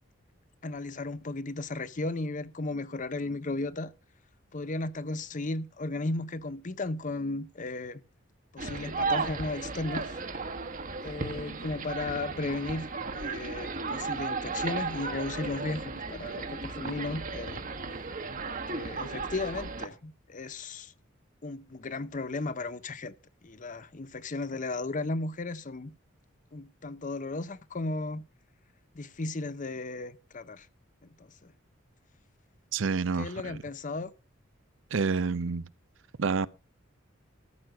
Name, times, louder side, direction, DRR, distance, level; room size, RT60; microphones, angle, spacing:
voice 1, 0.6-3.9 4.5-8.0 8.5-10.2 11.0-12.9 13.1-17.6 18.5-20.9 21.4-23.1 23.4-25.9 26.5-28.2 28.9-30.7 31.4-31.5 33.2-34.1, left 2 dB, 40° left, 0.7 m, -35 dB
sound 1, 8.6-19.9, right 4 dB, 40° right, 1.3 m, -35 dB
voice 2, 32.7-33.6 34.9-35.7 36.2-36.5, right 5 dB, 65° right, 0.6 m, -28 dB
14.0 x 6.2 x 6.3 m
head